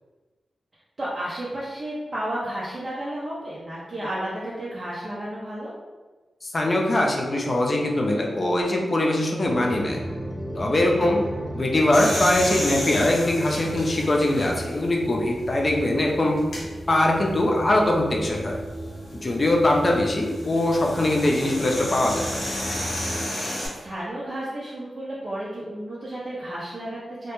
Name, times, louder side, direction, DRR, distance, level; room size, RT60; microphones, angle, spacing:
voice 1, 1.0-5.7 10.9-11.1 23.7-27.3, right 1 dB, 55° right, -9 dB, 0.5 m, -32 dB
voice 2, 6.4-10.0 10.5-11.2 11.5-16.4 16.9-18.6 19.2-22.4, left 1 dB, 45° left, 0 dB, 0.4 m, -22 dB
sound 1, 9.4-23.3, right 1 dB, 5° right, 0.5 m, -35 dB
sound 2, 11.9-14.8 15.4-15.5 16.4-16.6 18.8-23.7, left 1 dB, 90° left, 0.7 m, -32 dB
2.1 x 2.1 x 3.0 m, 1.3 s
cardioid pair, 55°, 0 cm